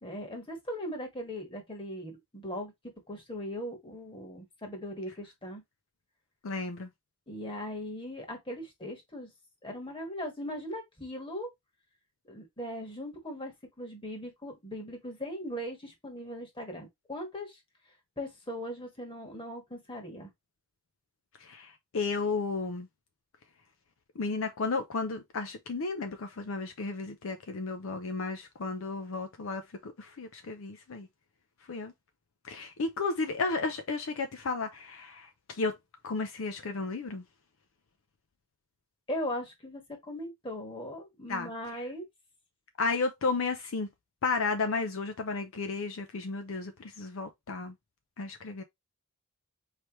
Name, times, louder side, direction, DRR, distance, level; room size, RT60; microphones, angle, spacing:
voice 1, 0.0-2.7 3.1-5.6 7.3-9.3 9.6-11.5 12.3-13.5 13.8-17.6 18.2-20.3 39.1-42.0, equal, 25° left, 1.5 m, -39 dB
voice 2, 6.4-6.9 21.4-22.9 24.2-31.1 31.7-31.9 32.4-35.8 36.0-37.2 41.3-41.8 42.8-43.9 44.2-47.7 48.2-48.6, left 4 dB, 65° left, 0.5 m, -33 dB
4.5 x 3.3 x 3.0 m
head